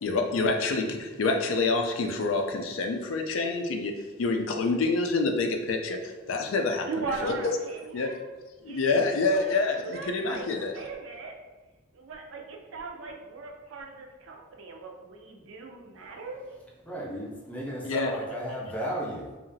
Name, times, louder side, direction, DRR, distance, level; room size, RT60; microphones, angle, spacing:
voice 1, 0.0-3.9 4.2-6.9 7.2-7.3 7.9-8.1 8.6-10.7 17.8-18.1, left 3 dB, 90° left, 4 dB, 0.4 m, -27 dB
voice 2, 6.8-8.3 8.6-11.3 11.9-16.5, right 4 dB, 80° right, 1 dB, 0.5 m, -39 dB
voice 3, 16.8-19.3, equal, 10° left, -4 dB, 0.5 m, -34 dB
2.8 x 2.4 x 2.6 m, 1.2 s
head